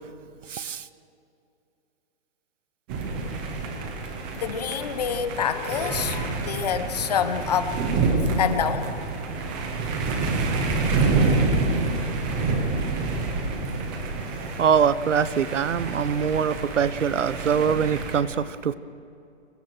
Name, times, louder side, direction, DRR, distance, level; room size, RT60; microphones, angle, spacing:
voice 1, 0.5-0.8 14.6-18.7, right 7 dB, 85° right, 15 dB, 1.3 m, -23 dB
sound 1, 2.9-18.2, right 3 dB, 10° right, 0.7 m, -27 dB
voice 2, 4.3-7.7 8.4-8.9, left 8 dB, 35° left, 10 dB, 1.2 m, -27 dB
25.0 x 24.5 x 6.3 m, 2.6 s
hypercardioid pair, 175°, 36 cm